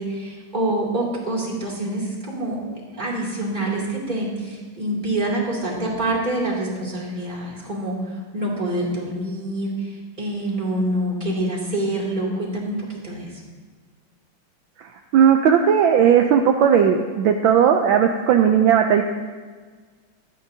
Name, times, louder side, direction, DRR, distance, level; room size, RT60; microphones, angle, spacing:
voice 1, 0.0-13.4, right 1 dB, 20° right, -4 dB, 2.8 m, -26 dB
voice 2, 14.8-19.0, right 8 dB, 75° right, 4 dB, 1.3 m, -17 dB
16.0 x 12.5 x 2.8 m, 1.5 s
omnidirectional pair, 2.3 m